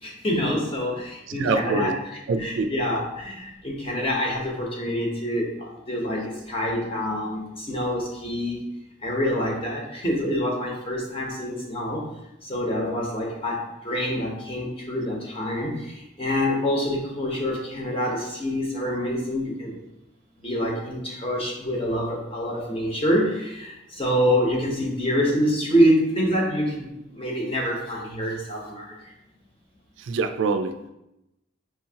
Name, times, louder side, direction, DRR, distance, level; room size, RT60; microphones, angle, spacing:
voice 1, 0.0-1.9 2.4-8.6 9.0-12.1 12.4-19.8 20.4-29.1, equal, 30° left, -1 dB, 0.8 m, -26 dB
voice 2, 1.3-2.0 2.3-2.7 30.0-30.8, right 4 dB, 70° right, 7 dB, 0.3 m, -25 dB
5.8 x 2.8 x 2.8 m, 0.89 s
head